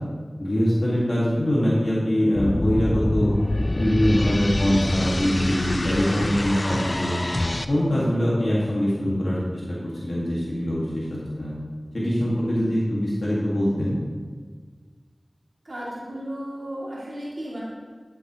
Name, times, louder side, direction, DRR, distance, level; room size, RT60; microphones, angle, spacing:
voice 1, 0.4-3.3 3.7-7.2 7.7-9.4 9.7-11.0 11.4-11.5 11.9-14.0, equal, 70° left, -7 dB, 1.9 m, -23 dB
sound 1, 2.4-7.6, left 1 dB, 40° left, 0.4 m, -26 dB
voice 2, 15.6-17.6, equal, 65° right, -8 dB, 2.6 m, -34 dB
11.5 x 7.8 x 3.1 m, 1.5 s
wide cardioid pair, 55°, 0 cm